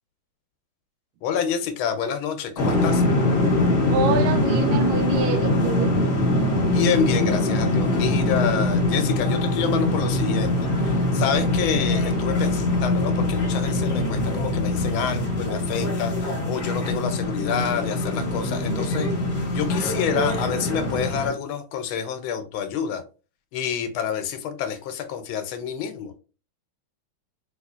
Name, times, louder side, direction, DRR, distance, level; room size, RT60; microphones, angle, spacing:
voice 1, 1.2-3.0 6.7-10.5 10.8-19.1 19.5-23.0 23.5-26.1, left 7 dB, 85° left, 1.4 m, -28 dB
sound 1, 2.6-21.3, left 1 dB, 35° left, 0.9 m, -23 dB
voice 2, 3.9-5.9, right 6 dB, 85° right, 1.5 m, -27 dB
3.3 x 3.0 x 2.3 m
omnidirectional pair, 2.2 m